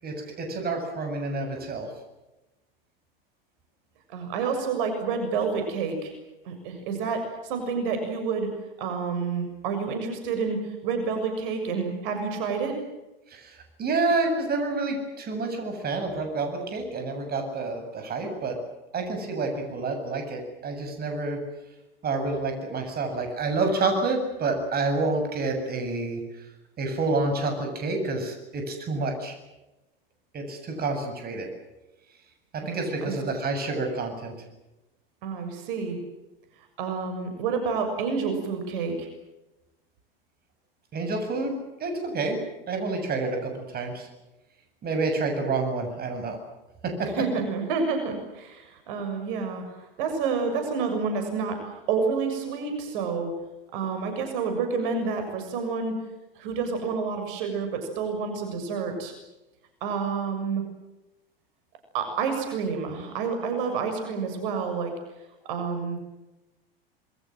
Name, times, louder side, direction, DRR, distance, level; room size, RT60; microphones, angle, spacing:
voice 1, 0.0-1.9 13.3-18.6 18.9-21.4 22.0-26.2 26.8-29.3 30.3-31.5 32.5-34.3 40.9-41.5 41.8-42.4 42.7-44.1 44.8-46.4 46.8-47.1, right 3 dB, 30° right, 5 dB, 7.8 m, -28 dB
voice 2, 4.1-6.1 6.5-8.5 8.8-12.8 32.6-33.1 35.2-36.0 36.8-39.1 47.1-53.3 53.7-56.0 56.4-59.1 59.8-60.6 61.9-64.9 65.4-66.0, right 5 dB, 60° right, 6 dB, 6.9 m, -29 dB
27.5 x 23.0 x 7.7 m, 1.0 s
hypercardioid pair, 95°, 29 cm